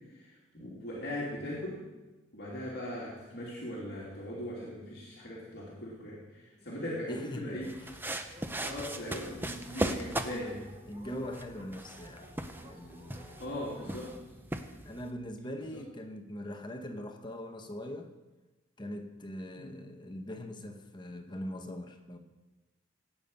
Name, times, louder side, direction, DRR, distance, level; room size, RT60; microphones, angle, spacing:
voice 1, 0.1-1.8 2.3-7.7 8.6-10.6 13.4-14.1 15.7-15.8 19.6-19.8, left 1 dB, 55° left, -6 dB, 2.8 m, -39 dB
voice 2, 7.1-8.0 9.2-9.4 10.9-13.4 13.8-14.2 14.8-18.1 18.8-22.2, left 1 dB, 20° left, 5 dB, 1.0 m, -42 dB
sound 1, 7.6-15.1, right 1 dB, 10° right, 0.6 m, -39 dB
Dog, 8.3-14.2, equal, 30° right, 2.2 m, -55 dB
17.5 x 8.7 x 5.4 m, 1.2 s
head